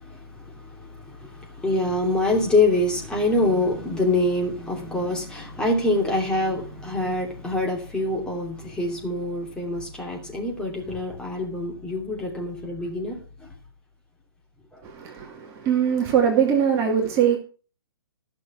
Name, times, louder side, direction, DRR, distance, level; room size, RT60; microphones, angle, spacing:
voice 1, 0.0-13.2 14.7-14.8, left 2 dB, 5° left, 2.7 m, -25 dB
voice 2, 14.8-17.4, right 8 dB, 25° right, 2.3 m, -22 dB
14.5 x 6.8 x 5.9 m
figure-of-eight pair, 125°, 13 cm